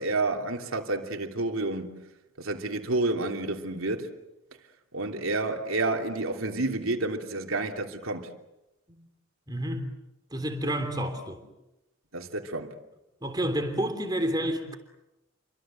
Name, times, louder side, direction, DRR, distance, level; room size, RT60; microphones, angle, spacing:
voice 1, 0.0-2.0 2.4-4.1 4.9-8.3 12.1-12.7, right 2 dB, 85° right, 3.0 m, -29 dB
voice 2, 9.5-9.9 10.3-11.4 13.2-14.8, equal, 20° right, 3.2 m, -29 dB
30.0 x 24.5 x 7.7 m
head